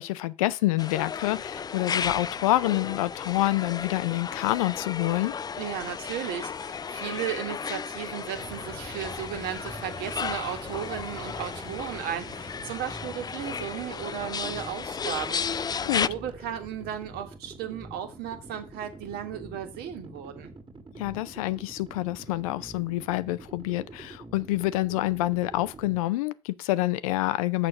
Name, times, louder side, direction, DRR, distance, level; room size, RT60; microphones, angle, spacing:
voice 1, 0.0-5.3 15.9-16.1 21.0-27.7, left 17 dB, 80° left, 0.5 m, -27 dB
sound 1, 0.8-16.1, left 6 dB, 25° left, 0.3 m, -34 dB
voice 2, 5.5-15.8 16.1-20.5, right 9 dB, 65° right, 1.6 m, -35 dB
sound 2, 8.3-26.0, right 2 dB, 30° right, 1.8 m, -45 dB
6.6 x 6.4 x 5.5 m
hypercardioid pair, 60°, 18 cm